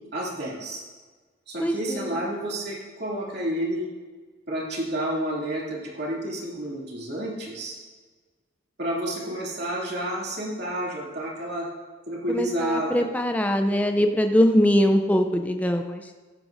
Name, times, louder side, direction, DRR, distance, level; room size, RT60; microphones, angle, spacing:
voice 1, 0.1-0.8 1.5-3.9 4.5-7.8 8.8-11.7 12.1-13.0, right 1 dB, 55° right, -5 dB, 2.6 m, -30 dB
voice 2, 1.6-2.2 12.3-16.0, equal, 10° left, 5 dB, 0.4 m, -22 dB
14.5 x 11.0 x 2.6 m, 1.4 s
head